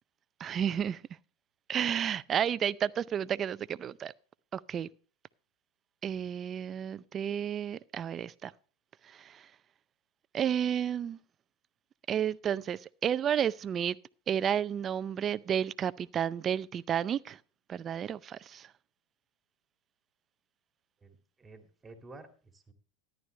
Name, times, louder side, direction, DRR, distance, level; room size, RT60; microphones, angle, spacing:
voice 1, 0.4-1.0 1.7-4.1 4.5-4.9 6.0-8.5 9.0-9.5 10.3-11.2 12.1-14.0 14.3-17.4 17.7-18.7, right 9 dB, 30° right, 0.5 m, -31 dB
voice 2, 21.0-22.7, right 3 dB, 15° right, 2.2 m, -52 dB
13.5 x 11.0 x 3.2 m
hypercardioid pair, 105°, 0 cm